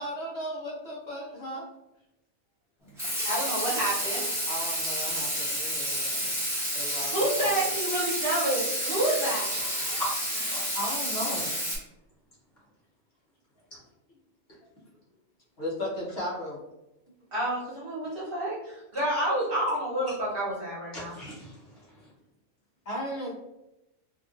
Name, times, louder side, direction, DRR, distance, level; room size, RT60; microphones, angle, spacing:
voice 1, 0.0-1.6 4.5-6.3 6.7-7.6 10.7-11.6 15.6-16.6 22.9-23.3, equal, 60° left, -6 dB, 0.9 m, -35 dB
Water tap faucet / Sink (filling or washing), 3.0-11.8, equal, ahead, 0.8 m, -30 dB
voice 2, 3.2-4.2 7.1-9.5 17.3-21.1, right 1 dB, 50° right, -7 dB, 1.1 m, -29 dB
voice 3, 9.5-10.8 20.9-22.1, equal, 40° left, -7 dB, 1.3 m, -39 dB
2.7 x 2.4 x 2.5 m, 0.91 s
omnidirectional pair, 1.3 m